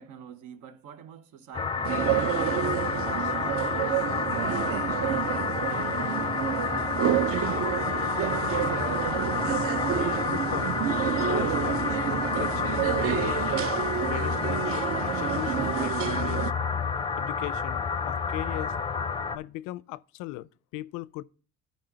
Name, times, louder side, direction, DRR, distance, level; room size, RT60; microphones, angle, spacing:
voice 1, 0.0-9.3, right 8 dB, 80° right, 1.0 m, -47 dB
sound 1, 1.5-19.4, left 5 dB, 15° left, 0.5 m, -29 dB
sound 2, 1.8-16.5, right 11 dB, 50° right, 0.5 m, -29 dB
sound 3, 3.6-15.8, right 3 dB, 30° right, 2.3 m, -52 dB
voice 2, 10.3-12.0 12.3-13.5 14.1-16.5 17.2-18.7 19.3-21.2, left 17 dB, 90° left, 0.5 m, -38 dB
11.5 x 5.1 x 3.8 m
cardioid pair, 120°, 30 cm